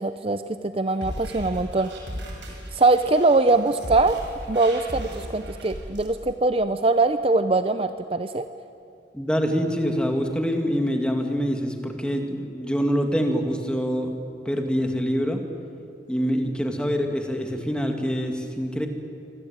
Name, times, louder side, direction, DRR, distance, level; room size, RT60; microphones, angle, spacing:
voice 1, 0.0-1.9 2.7-4.2 4.5-8.5, right 3 dB, 30° right, 10 dB, 0.7 m, -22 dB
sound 1, 0.9-6.1, equal, 85° right, 6.4 m, -36 dB
voice 2, 9.1-14.1 14.4-15.4 16.1-18.9, equal, 5° left, 4 dB, 2.4 m, -25 dB
26.5 x 25.0 x 9.0 m, 2.6 s
head